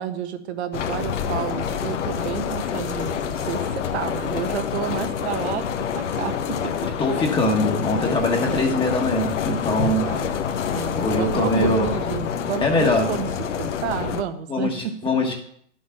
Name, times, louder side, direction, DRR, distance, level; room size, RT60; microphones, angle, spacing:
voice 1, 0.0-6.7 8.5-8.8 10.0-13.3 13.6-14.9, right 9 dB, 65° right, 8 dB, 1.4 m, -31 dB
sound 1, 0.7-14.2, left 8 dB, 80° left, 1.2 m, -27 dB
voice 2, 7.0-10.1 11.0-11.9 12.6-13.1 14.5-15.3, left 1 dB, 15° left, 1 dB, 1.3 m, -22 dB
11.0 x 6.3 x 5.7 m, 0.66 s
hypercardioid pair, 135°, 36 cm